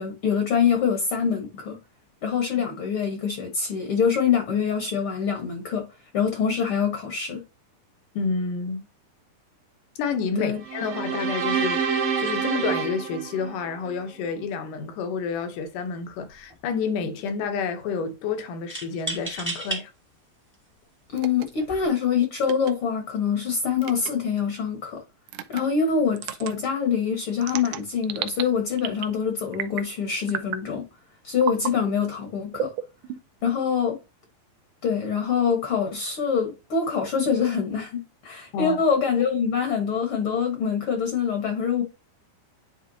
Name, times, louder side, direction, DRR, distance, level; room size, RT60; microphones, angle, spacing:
voice 1, 0.0-1.8 2.2-5.9 6.1-7.4 10.4-10.6 21.1-25.0 25.5-30.8 31.2-32.7 33.4-34.0 34.8-41.8, left 6 dB, 55° left, 1.6 m, -25 dB
voice 2, 8.1-8.8 10.0-19.9 38.5-38.8, left 5 dB, 70° left, 2.4 m, -29 dB
sound 1, 10.6-14.0, right 6 dB, 55° right, 1.8 m, -27 dB
sound 2, 15.6-15.8 16.1-16.8 18.7-19.8 20.5-20.6 21.5-21.9, right 2 dB, 10° right, 0.7 m, -33 dB
sound 3, 21.2-21.5 22.4-22.7 23.8-24.1 25.3-25.6 26.2-26.5 27.4-28.4 28.8-29.2 29.5-29.9 30.3-30.7 31.4-31.7 32.5-33.4, right 11 dB, 75° right, 1.9 m, -32 dB
10.0 x 3.7 x 2.8 m
omnidirectional pair, 4.1 m